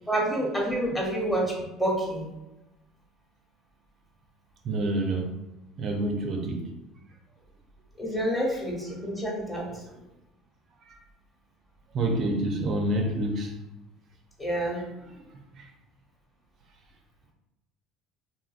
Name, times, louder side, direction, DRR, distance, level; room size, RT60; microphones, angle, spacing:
voice 1, 0.1-1.5 1.8-2.3 8.0-9.8 14.4-14.9, right 1 dB, 15° left, -3 dB, 1.0 m, -28 dB
voice 2, 4.6-5.3 5.8-6.7 9.9-10.0 10.8-11.0 11.9-13.5 15.5-15.7, right 1 dB, 50° right, 2 dB, 0.4 m, -28 dB
2.7 x 2.6 x 2.4 m, 0.97 s
supercardioid pair, 100°, 0 cm